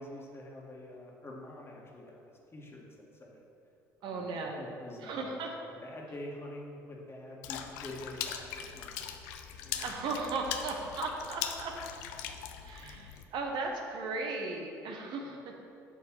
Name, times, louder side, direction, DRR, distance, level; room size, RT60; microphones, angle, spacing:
voice 1, 0.0-3.4 4.0-5.3 5.7-9.1 9.6-10.3 10.7-10.8 12.8-12.9 15.2-15.4, left 1 dB, 30° left, -2 dB, 2.0 m, -47 dB
voice 2, 4.0-4.6 5.0-5.5 9.8-11.7 12.6-15.5, right 3 dB, 60° right, 1 dB, 1.2 m, -36 dB
Water / Splash splatter, 7.4-13.2, left 9 dB, 75° left, 0.6 m, -40 dB
7.7 x 5.3 x 6.2 m, 2.7 s
hypercardioid pair, 55°, 9 cm